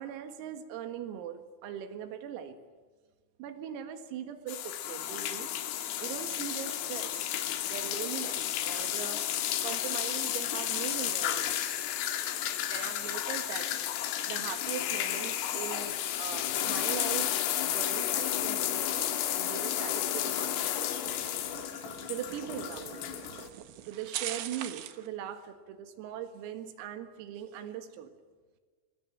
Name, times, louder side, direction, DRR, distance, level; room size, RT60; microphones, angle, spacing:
voice 1, 0.0-2.6 3.4-5.5 6.0-7.2 7.6-11.8 12.7-17.3 17.6-21.3 21.9-23.1 23.9-28.1, right 9 dB, 85° right, 8 dB, 4.4 m, -41 dB
sound 1, 4.5-23.5, left 11 dB, 80° left, 4.3 m, -32 dB
sound 2, 14.4-25.1, right 12 dB, 70° right, 3.3 m, -46 dB
26.0 x 24.0 x 7.6 m, 1.4 s
omnidirectional pair, 6.0 m